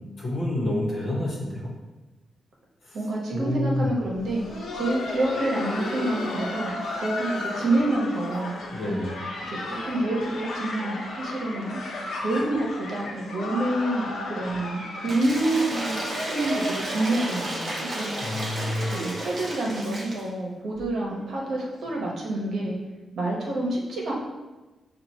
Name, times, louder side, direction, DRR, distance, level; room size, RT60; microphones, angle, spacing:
voice 1, 0.2-1.7 2.8-3.0 3.3-3.9 8.7-9.2 18.2-19.0, left 1 dB, 40° left, -5 dB, 1.2 m, -28 dB
voice 2, 2.9-4.5 4.7-8.5 9.5-11.8 12.2-18.1 18.9-22.8 23.1-24.1, right 2 dB, 60° right, -2 dB, 0.9 m, -27 dB
Laughter, 4.1-19.8 20.1-20.2 20.7-20.9 21.4-21.6 22.7-22.8, left 2 dB, 90° left, 0.8 m, -35 dB
Cheering / Applause / Crowd, 15.1-20.3, right 1 dB, 30° right, 0.9 m, -32 dB
6.7 x 2.4 x 3.0 m, 1.2 s
wide cardioid pair, 180°, 0 cm